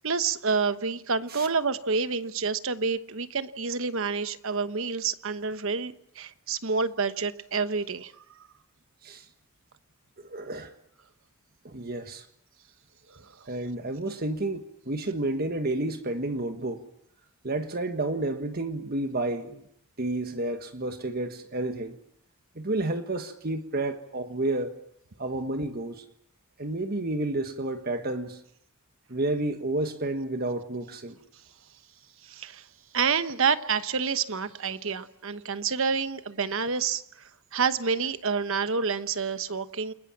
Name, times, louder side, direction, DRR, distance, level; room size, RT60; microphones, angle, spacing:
voice 1, 0.0-8.1 32.3-32.6 32.9-37.0 37.5-39.9, right 5 dB, 65° right, 1.1 m, -28 dB
voice 2, 10.2-10.7 11.6-12.3 13.5-16.9 17.4-19.6 20.0-22.0 22.5-24.7 25.2-26.0 26.6-28.4 29.1-31.2, right 2 dB, 45° right, 1.4 m, -30 dB
29.0 x 21.5 x 7.4 m
head